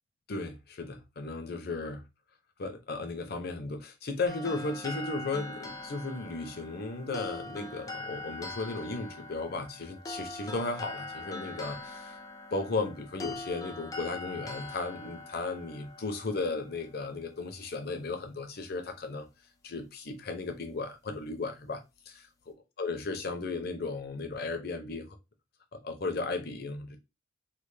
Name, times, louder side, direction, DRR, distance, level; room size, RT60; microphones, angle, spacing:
voice 1, 0.3-2.0 2.6-12.2 12.5-19.3 19.6-25.1 25.7-27.0, left 3 dB, 50° left, 0.7 m, -35 dB
sound 1, 4.3-17.5, left 2 dB, 20° left, 0.3 m, -43 dB
3.3 x 2.2 x 3.2 m
head